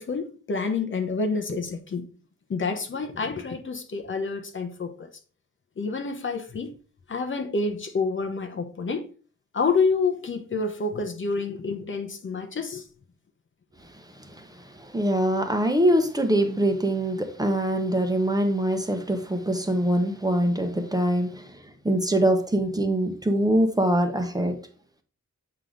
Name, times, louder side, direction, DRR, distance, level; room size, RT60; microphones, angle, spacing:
voice 1, 0.0-2.1 2.5-5.1 5.8-6.7 7.1-9.1 9.5-12.8, left 4 dB, 45° left, 0.9 m, -28 dB
voice 2, 13.9-24.6, right 1 dB, 15° right, 1.0 m, -24 dB
7.7 x 4.9 x 3.8 m
wide cardioid pair, 135°, 29 cm